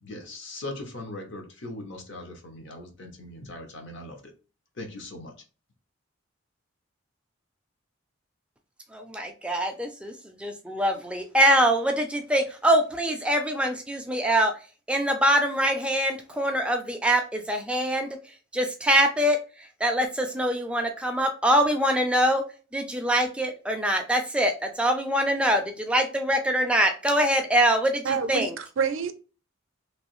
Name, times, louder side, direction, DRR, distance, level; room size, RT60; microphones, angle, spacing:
voice 1, 0.0-4.2 4.8-5.3, left 2 dB, 60° left, 0.8 m, -39 dB
voice 2, 8.9-14.5 14.9-22.4 22.7-28.5, right 1 dB, 5° right, 0.3 m, -24 dB
voice 3, 28.0-29.1, right 6 dB, 70° right, 0.4 m, -27 dB
3.1 x 2.6 x 3.0 m
head